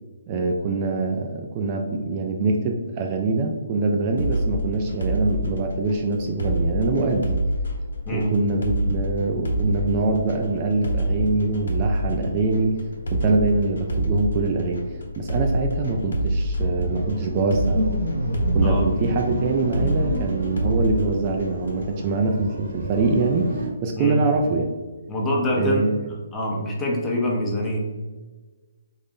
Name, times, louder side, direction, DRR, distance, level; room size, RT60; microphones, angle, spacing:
voice 1, 0.3-7.4 8.1-12.8 13.1-14.8 15.2-17.8 18.5-24.7 25.6-25.9, right 3 dB, 30° right, 2 dB, 0.3 m, -24 dB
sound 1, 4.2-21.9, equal, 70° left, 0.9 m, -27 dB
sound 2, 16.6-23.7, right 1 dB, 85° right, 0.7 m, -29 dB
voice 2, 25.1-27.8, left 1 dB, 15° left, -2 dB, 0.7 m, -25 dB
3.8 x 2.1 x 3.6 m, 1.3 s
hypercardioid pair, 145°, 0 cm